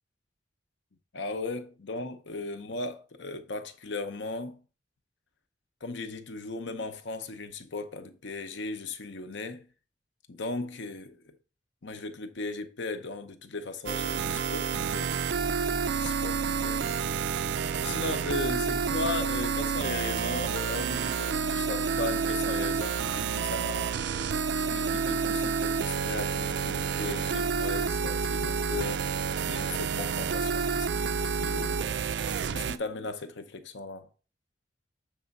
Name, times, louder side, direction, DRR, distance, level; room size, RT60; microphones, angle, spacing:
voice 1, 1.1-4.6 5.8-9.7 10.3-11.3 11.8-15.2 15.9-16.9 17.8-23.9 24.7-29.1 29.4-31.9 32.5-34.1, left 3 dB, 75° left, 0.8 m, -37 dB
sound 1, 13.9-32.8, right 6 dB, 65° right, 0.4 m, -29 dB
6.8 x 3.5 x 5.3 m
head